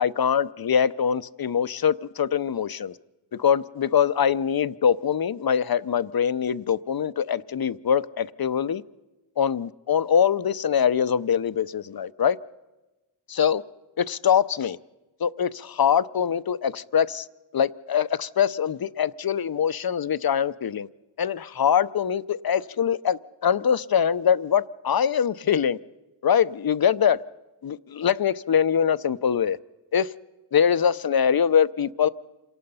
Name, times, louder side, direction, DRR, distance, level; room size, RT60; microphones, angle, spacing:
voice 1, 0.0-2.9 3.3-8.8 9.4-12.4 13.3-13.6 14.0-14.8 15.2-17.3 17.5-20.9 21.2-25.8 26.2-27.2 27.6-29.6 29.9-30.1 30.5-32.1, left 8 dB, 50° left, 0.7 m, -23 dB
27.0 x 18.5 x 5.6 m
cardioid pair, 45°, 49 cm